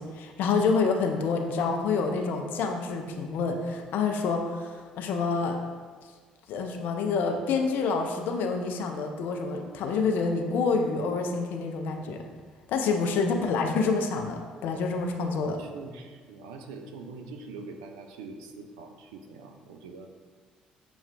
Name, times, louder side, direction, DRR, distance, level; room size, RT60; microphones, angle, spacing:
voice 1, 0.0-5.6 6.5-12.2 12.7-15.6, left 4 dB, 55° left, 3 dB, 0.4 m, -27 dB
voice 2, 15.6-20.1, right 4 dB, 70° right, 4 dB, 0.3 m, -44 dB
6.8 x 2.3 x 2.2 m, 1.5 s
figure-of-eight pair, 50°, 4 cm